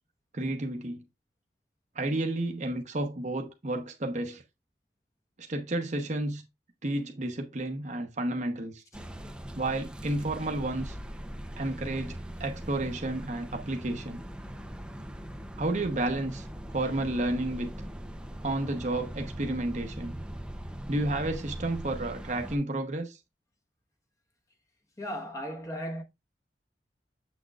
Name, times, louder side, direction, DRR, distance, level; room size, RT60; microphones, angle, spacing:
voice 1, 0.3-1.0 1.9-4.4 5.4-6.4 6.8-8.8 9.5-11.0 11.6-14.2 15.6-16.5 16.7-17.7 18.4-20.1 20.9-23.2, right 2 dB, 45° right, 0.9 m, -31 dB
sound 1, 8.9-22.6, equal, 5° right, 0.6 m, -41 dB
voice 2, 25.0-26.0, equal, 20° left, 1.2 m, -36 dB
7.7 x 6.1 x 2.4 m
head